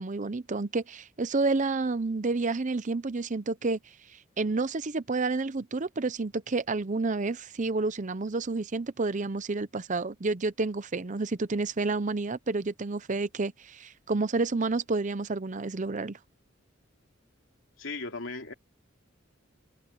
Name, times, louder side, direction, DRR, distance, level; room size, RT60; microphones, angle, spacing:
voice 1, 0.0-3.8 4.4-16.2, right 3 dB, 40° right, 0.7 m, -30 dB
voice 2, 17.8-18.5, left 3 dB, 80° left, 2.7 m, -36 dB
open air
head